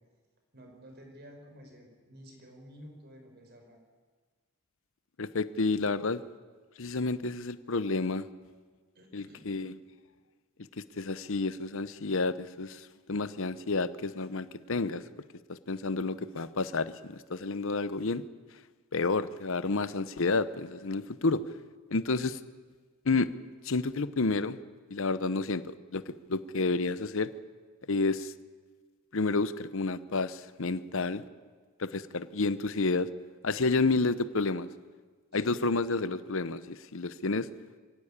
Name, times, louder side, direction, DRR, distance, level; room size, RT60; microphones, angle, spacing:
voice 1, 0.5-3.8 8.9-9.5 35.3-35.6, equal, 50° right, 3 dB, 5.2 m, -52 dB
voice 2, 5.2-6.2 6.8-8.2 9.1-9.8 11.0-15.0 15.5-18.2 18.9-21.4 21.9-22.4 23.1-23.3 23.6-24.6 24.9-27.3 27.9-28.3 29.1-31.2 31.8-33.1 33.4-34.7 35.3-37.5, left 3 dB, 65° left, 14 dB, 0.8 m, -30 dB
23.5 x 16.5 x 8.8 m, 1.4 s
head